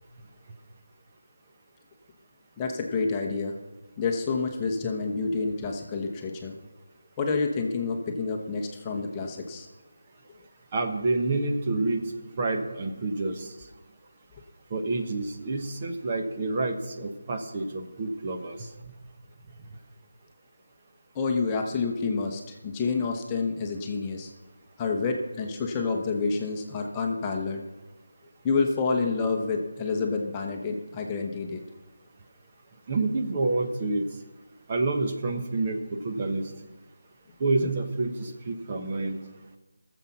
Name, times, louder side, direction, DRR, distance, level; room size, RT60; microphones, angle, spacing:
voice 1, 2.6-3.6 4.0-6.5 7.2-9.7 21.1-24.3 24.8-27.6 28.4-31.6, left 4 dB, 15° left, 1 dB, 1.0 m, -28 dB
voice 2, 10.7-12.0 12.4-13.5 14.7-18.7 32.9-34.0 34.7-36.5 37.4-39.2, right 3 dB, 30° right, 4 dB, 1.2 m, -28 dB
16.5 x 7.2 x 6.0 m, 1.1 s
figure-of-eight pair, 165°, 0 cm